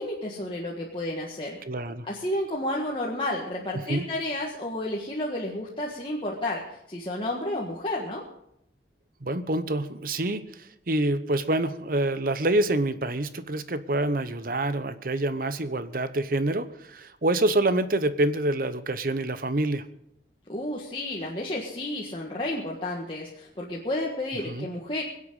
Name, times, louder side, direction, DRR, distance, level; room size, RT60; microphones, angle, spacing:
voice 1, 0.0-1.6 2.1-8.2 20.5-25.0, left 1 dB, 30° left, -3 dB, 1.7 m, -31 dB
voice 2, 1.7-2.1 3.9-4.1 9.2-19.8 24.5-24.7, right 1 dB, 50° right, 12 dB, 0.9 m, -26 dB
22.5 x 8.4 x 5.5 m, 0.77 s
head